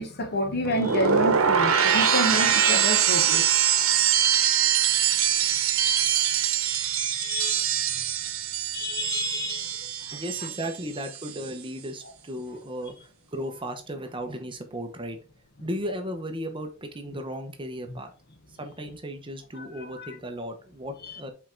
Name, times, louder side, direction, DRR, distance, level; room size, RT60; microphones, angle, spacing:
voice 1, 0.0-3.6 4.7-5.9 7.2-7.6 8.7-9.8 19.5-20.2 21.0-21.2, equal, 50° left, 1.3 m, -30 dB
sound 1, 0.6-10.8 11.0-11.5, right 8 dB, 90° right, 0.9 m, -23 dB
voice 2, 10.1-15.2 15.6-18.1 18.5-21.3, equal, 25° right, 1.0 m, -35 dB
5.6 x 4.5 x 3.9 m
head